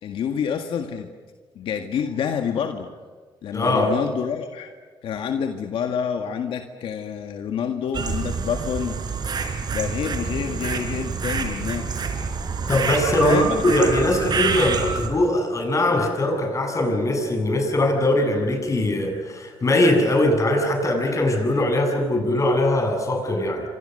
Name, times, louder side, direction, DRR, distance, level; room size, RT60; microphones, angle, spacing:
voice 1, 0.0-1.1 1.6-2.9 3.4-4.7 5.0-9.0 9.7-12.1 13.2-13.9, left 7 dB, 75° left, 5 dB, 1.9 m, -27 dB
voice 2, 3.5-4.0 12.7-23.6, left 1 dB, 35° left, 4 dB, 7.7 m, -21 dB
sound 1, 7.9-15.1, right 5 dB, 50° right, 4.5 m, -27 dB
28.5 x 26.0 x 6.7 m, 1.5 s
cardioid pair, 95°, 9 cm